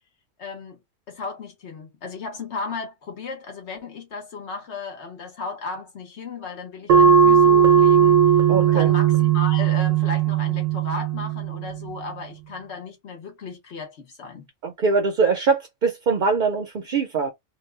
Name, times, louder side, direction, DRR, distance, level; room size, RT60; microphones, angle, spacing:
voice 1, 0.4-0.8 1.1-8.2 8.6-14.5, left 4 dB, 60° left, 1.3 m, -35 dB
sound 1, 6.9-12.0, right 8 dB, 80° right, 1.0 m, -17 dB
voice 2, 8.5-8.9 14.6-17.3, right 4 dB, 50° right, 0.7 m, -22 dB
2.9 x 2.3 x 3.2 m
omnidirectional pair, 1.3 m